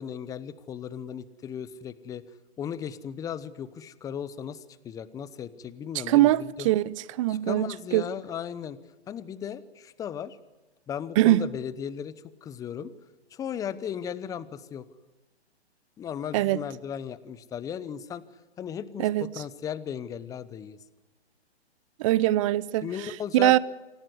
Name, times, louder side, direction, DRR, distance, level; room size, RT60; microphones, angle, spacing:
voice 1, 0.0-2.2 2.6-6.7 7.3-8.8 9.1-10.4 10.9-12.9 13.3-14.9 16.0-18.2 18.6-19.1 19.3-20.8 22.8-23.6, left 8 dB, 10° left, 0.8 m, -36 dB
voice 2, 6.1-8.0 11.2-11.4 16.3-16.6 19.0-19.3 22.0-22.9 23.3-23.6, right 15 dB, 30° right, 0.8 m, -22 dB
27.0 x 16.5 x 9.7 m
hypercardioid pair, 140°, 33 cm